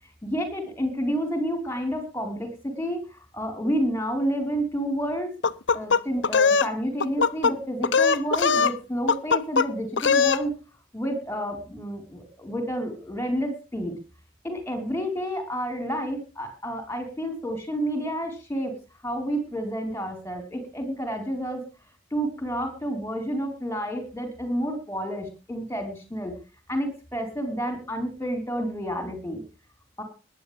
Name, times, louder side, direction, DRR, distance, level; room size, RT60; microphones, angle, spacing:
voice 1, 0.2-3.0 3.3-5.4 5.7-10.5 10.9-14.0 14.4-18.7 19.0-21.6 22.1-26.4 26.7-29.4 30.0-30.1, equal, 15° left, 5 dB, 5.1 m, -30 dB
sound 1, 5.4-6.7 7.0-7.5 7.8-8.8 9.1-9.7 10.0-10.4, left 5 dB, 80° left, 0.7 m, -20 dB
21.5 x 10.5 x 3.7 m, 0.32 s
head